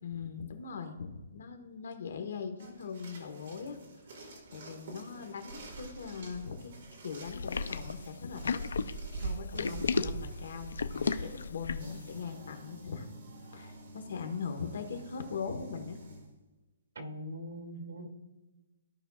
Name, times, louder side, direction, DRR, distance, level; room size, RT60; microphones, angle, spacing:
voice 1, 0.0-3.8 4.1-4.2 4.5-6.7 7.0-8.6 9.1-13.1 13.5-16.0 18.0-18.1, left 6 dB, 60° left, 6 dB, 1.4 m, -40 dB
sound 1, 2.6-16.3, right 3 dB, 45° right, 1.8 m, -46 dB
sound 2, 7.3-12.0, left 5 dB, 85° left, 0.5 m, -33 dB
voice 2, 9.5-9.9 11.9-12.0 17.0-18.1, equal, 75° right, 4 dB, 2.0 m, -42 dB
15.0 x 5.4 x 2.4 m, 1.1 s
hypercardioid pair, 175°, 0 cm